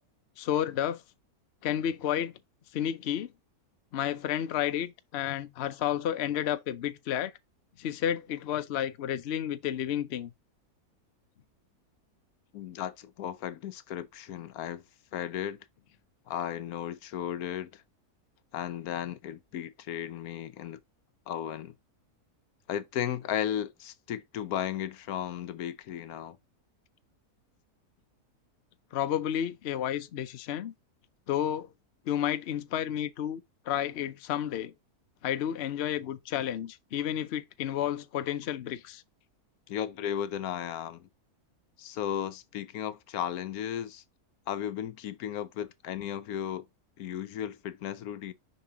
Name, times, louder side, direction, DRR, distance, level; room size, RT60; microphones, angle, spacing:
voice 1, 0.4-1.0 1.6-2.3 2.7-3.3 3.9-7.3 7.8-10.3 28.9-30.7 31.3-31.7 32.1-33.4 33.7-34.7 35.2-39.0, left 10 dB, 55° left, 0.7 m, -31 dB
voice 2, 12.5-14.8 15.1-15.6 16.3-17.8 18.5-20.8 21.3-21.7 22.7-26.4 39.7-41.1 41.8-44.0 44.5-46.6 47.0-48.3, left 10 dB, 75° left, 1.1 m, -35 dB
6.9 x 5.4 x 2.8 m
omnidirectional pair, 1.6 m